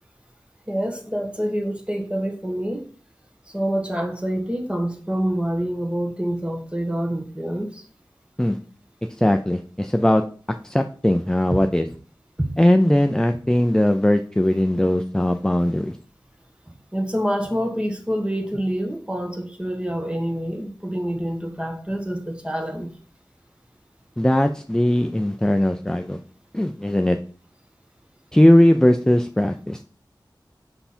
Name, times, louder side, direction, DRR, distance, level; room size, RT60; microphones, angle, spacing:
voice 1, 0.7-2.9 3.5-7.8 11.5-11.6 12.4-12.5 16.9-22.9, equal, 15° right, 3 dB, 1.5 m, -26 dB
voice 2, 9.2-10.2 10.6-11.8 12.6-16.0 24.2-26.2 26.5-27.2 28.3-29.8, left 1 dB, 10° left, 6 dB, 0.5 m, -19 dB
5.8 x 5.7 x 4.3 m, 0.41 s
wide cardioid pair, 55°, 8 cm